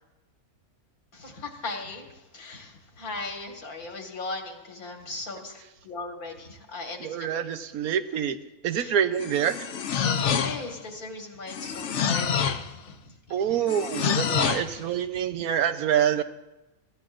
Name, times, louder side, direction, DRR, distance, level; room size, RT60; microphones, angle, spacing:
voice 1, 1.1-7.3 8.7-8.9 10.0-13.6 14.6-14.8 15.1-15.2, left 3 dB, 90° left, 2 dB, 2.3 m, -38 dB
voice 2, 7.0-8.4 8.6-9.5 13.3-16.2, right 9 dB, 80° right, 10 dB, 1.2 m, -26 dB
sound 1, 9.2-10.8 11.5-12.7 13.7-14.7, left 7 dB, 60° left, 1.0 m, -27 dB
25.0 x 14.0 x 2.5 m, 1.0 s
omnidirectional pair, 1.5 m